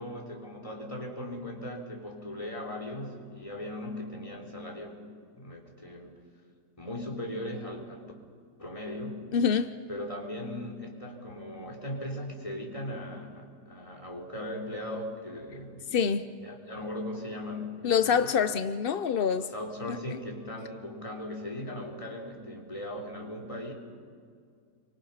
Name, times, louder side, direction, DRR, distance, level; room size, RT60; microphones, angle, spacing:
voice 1, 0.0-5.1 5.4-6.1 6.8-8.1 8.6-9.3 9.9-15.9 16.4-18.3 19.3-23.7, left 1 dB, 15° left, 1 dB, 3.7 m, -38 dB
voice 2, 9.3-9.7 15.9-16.3 17.8-19.5, left 7 dB, 65° left, 11 dB, 0.5 m, -25 dB
30.0 x 24.5 x 5.7 m, 2.2 s
omnidirectional pair, 1.9 m